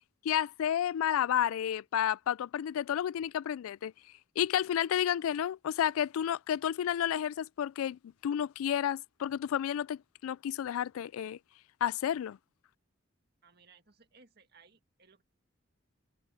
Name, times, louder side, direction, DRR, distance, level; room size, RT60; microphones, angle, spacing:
voice 1, 0.2-3.9 4.4-11.4 11.8-12.4, left 10 dB, 90° left, 0.3 m, -31 dB
voice 2, 13.4-15.2, right 5 dB, 50° right, 1.9 m, -61 dB
head